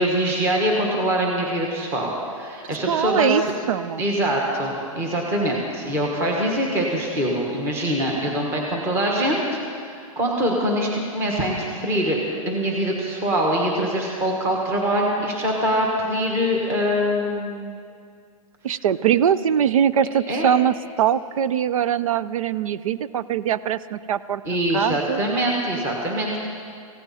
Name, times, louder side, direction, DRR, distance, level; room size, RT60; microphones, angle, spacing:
voice 1, 0.0-3.5 4.0-12.2 12.4-17.8 20.3-20.5 24.4-26.4, equal, 15° right, -1 dB, 1.4 m, -24 dB
voice 2, 2.9-3.4 3.7-4.0 18.6-24.4 24.7-25.2, right 9 dB, 65° right, 16 dB, 0.5 m, -22 dB
18.0 x 15.5 x 4.2 m, 2.3 s
hypercardioid pair, 170°, 19 cm